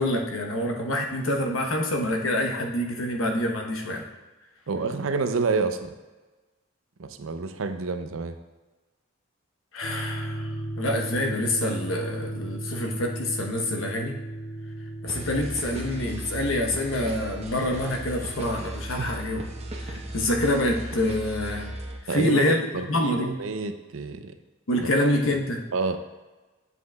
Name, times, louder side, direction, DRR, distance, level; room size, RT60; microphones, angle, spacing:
voice 1, 0.0-4.1 9.7-14.2 15.0-19.4 19.8-21.8 22.1-23.4 24.7-25.6, left 1 dB, 85° left, 2 dB, 1.0 m, -26 dB
voice 2, 4.7-5.9 7.0-8.4 19.0-19.1 22.1-24.3 24.8-25.4 25.7-26.0, right 4 dB, 85° right, 9 dB, 0.6 m, -29 dB
sound 1, 9.8-20.7, right 1 dB, 35° left, 0.7 m, -37 dB
sound 2, 15.1-22.0, right 1 dB, 30° right, 1.0 m, -36 dB
8.1 x 7.4 x 2.3 m, 1.2 s
head